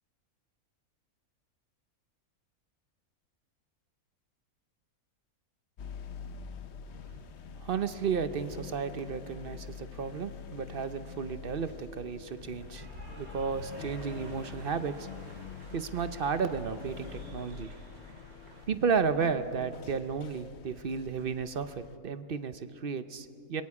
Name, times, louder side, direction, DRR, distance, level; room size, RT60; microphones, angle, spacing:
sound 1, 5.8-22.0, left 6 dB, 55° left, 0.9 m, -46 dB
voice 1, 7.6-12.9 13.2-15.1 15.7-17.7 18.7-23.6, right 6 dB, 50° right, 11 dB, 0.8 m, -33 dB
Cheering / Applause, 12.4-18.6, right 2 dB, 75° right, 3.0 m, -52 dB
26.5 x 22.0 x 4.8 m, 2.2 s
omnidirectional pair, 1.5 m